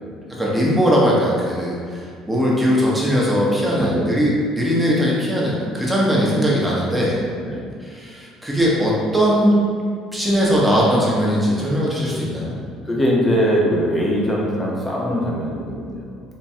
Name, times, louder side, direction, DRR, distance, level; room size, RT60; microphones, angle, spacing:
voice 1, 0.4-7.2 7.8-9.5 10.1-12.5, equal, 5° right, -6 dB, 1.2 m, -19 dB
voice 2, 12.8-16.2, equal, 15° left, -3 dB, 1.0 m, -22 dB
4.4 x 2.9 x 3.7 m, 2.2 s
cardioid pair, 105°, 0 cm